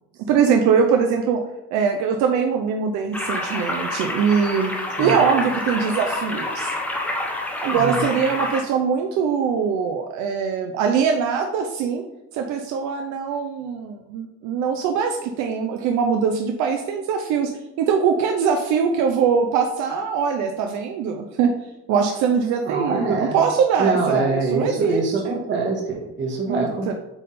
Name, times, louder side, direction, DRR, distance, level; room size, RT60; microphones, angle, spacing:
voice 1, 0.2-1.4 1.7-6.7 7.6-12.0 12.3-17.5 17.8-21.5 21.9-25.4 26.5-26.9, right 6 dB, 70° right, 4 dB, 0.7 m, -22 dB
sound 1, 3.1-8.6, left 1 dB, 5° left, 0.8 m, -27 dB
voice 2, 7.7-8.1 22.6-23.4 23.8-26.9, right 3 dB, 40° right, 0 dB, 1.6 m, -24 dB
8.0 x 3.6 x 4.3 m, 0.98 s
cardioid pair, 170°, 30 cm